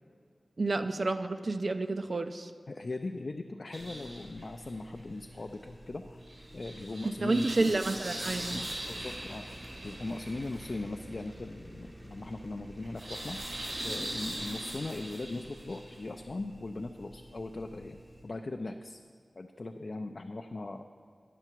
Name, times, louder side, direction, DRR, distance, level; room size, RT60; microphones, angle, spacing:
voice 1, 0.6-2.5 7.2-8.6, right 2 dB, 65° right, 8 dB, 0.3 m, -30 dB
voice 2, 2.7-6.3 6.5-7.8 8.5-13.4 13.8-19.0 19.4-20.8, left 2 dB, 60° left, 5 dB, 0.3 m, -39 dB
sound 1, 3.7-18.2, right 1 dB, 85° right, 1.9 m, -42 dB
sound 2, 8.2-14.3, right 1 dB, 10° right, 0.6 m, -52 dB
9.9 x 5.7 x 4.5 m, 2.1 s
wide cardioid pair, 50°, 0 cm